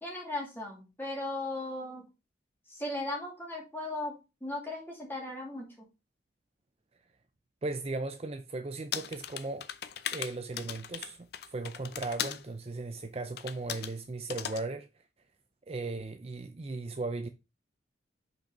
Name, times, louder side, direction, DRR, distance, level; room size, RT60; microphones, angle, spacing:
voice 1, 0.0-2.1 2.7-4.1 4.4-5.9, left 2 dB, 10° left, 2.5 m, -37 dB
voice 2, 7.6-9.7 10.1-14.9 15.7-17.3, right 3 dB, 35° right, 0.5 m, -37 dB
sound 1, 8.9-12.4 13.4-13.9 14.3-14.6, left 9 dB, 55° left, 0.5 m, -38 dB
5.3 x 4.5 x 5.3 m
head